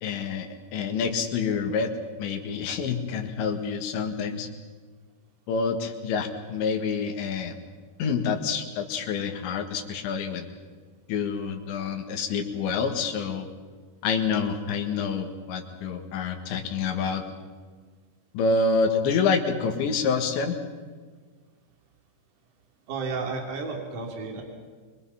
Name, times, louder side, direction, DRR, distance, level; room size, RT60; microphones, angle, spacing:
voice 1, 0.0-1.9 2.2-4.5 5.5-7.6 8.0-10.5 11.1-13.5 14.0-17.2 18.3-20.6, left 5 dB, 85° left, 3 dB, 4.0 m, -27 dB
voice 2, 22.9-24.4, right 4 dB, 50° right, 1 dB, 4.0 m, -32 dB
25.5 x 22.5 x 5.7 m, 1.5 s
omnidirectional pair, 5.0 m